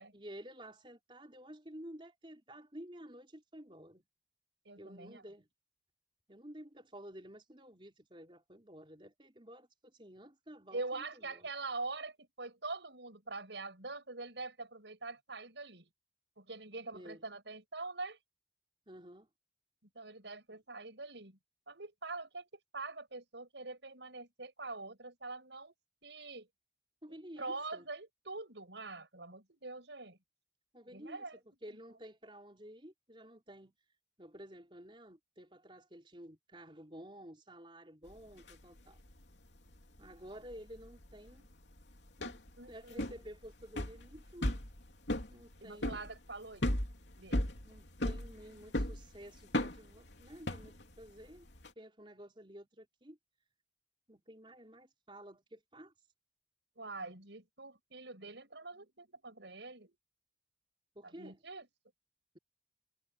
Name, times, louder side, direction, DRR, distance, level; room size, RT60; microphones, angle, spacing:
voice 1, 0.1-4.0 4.8-5.5 6.3-11.5 16.9-17.2 18.9-19.3 20.5-20.6 27.0-27.9 30.7-33.7 34.2-39.0 40.0-41.5 42.2-42.4 42.7-44.5 45.3-46.0 47.6-51.5 51.8-53.2 54.1-55.9 60.9-61.4, equal, 30° right, 4.8 m, -52 dB
voice 2, 4.7-5.2 10.7-15.9 16.4-18.2 19.9-21.4 21.7-25.7 26.0-26.5 27.1-30.2 30.9-31.4 41.4-41.5 42.6-43.0 45.6-46.7 47.2-47.5 56.8-60.0 61.0-61.7, right 3 dB, 90° right, 7.3 m, -44 dB
sound 1, 38.1-38.5 38.8-39.2 39.7-51.7, left 1 dB, 85° left, 3.1 m, -36 dB
head